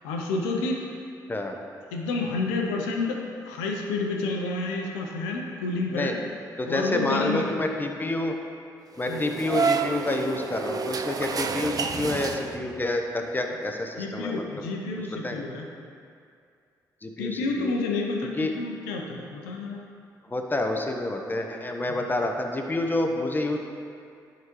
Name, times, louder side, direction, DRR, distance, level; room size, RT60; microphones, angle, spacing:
voice 1, 0.0-0.9 1.9-6.2 6.6-7.5 9.1-9.3 14.0-15.7 17.2-19.8 21.9-22.1, left 3 dB, 90° left, 1 dB, 0.6 m, -29 dB
voice 2, 6.6-8.4 9.0-14.6 15.2-15.4 17.0-17.7 18.4-18.5 20.2-23.6, left 2 dB, 20° left, 3 dB, 0.9 m, -28 dB
sound 1, 9.0-12.9, right 5 dB, 45° right, 0.4 m, -29 dB
10.5 x 3.8 x 3.0 m, 2.4 s
hypercardioid pair, 45°, 9 cm